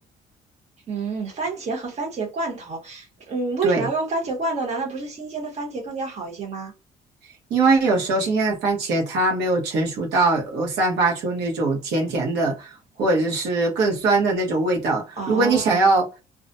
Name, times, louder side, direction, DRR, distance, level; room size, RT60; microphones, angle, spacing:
voice 1, 0.9-6.7 15.2-15.8, right 3 dB, 40° right, 1.0 m, -28 dB
voice 2, 7.5-16.0, right 3 dB, 85° right, 1.0 m, -21 dB
2.4 x 2.1 x 2.5 m
cardioid pair, 135°, 17 cm